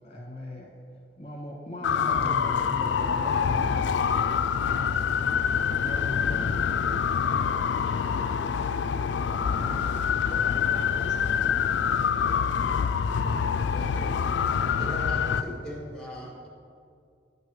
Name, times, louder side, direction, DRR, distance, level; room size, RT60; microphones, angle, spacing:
voice 1, 0.0-0.7 1.2-3.8 4.7-5.3 5.8-7.4 9.2-9.7, left 1 dB, 35° left, 0 dB, 1.4 m, -39 dB
sound 1, 1.8-15.4, left 7 dB, 90° left, 0.3 m, -26 dB
voice 2, 1.8-2.7 3.0-3.8 9.3-11.7, right 1 dB, 75° right, 0 dB, 1.0 m, -44 dB
voice 3, 13.7-14.3 14.7-16.5, equal, 5° left, -5 dB, 1.9 m, -40 dB
11.5 x 5.7 x 3.1 m, 2.3 s
head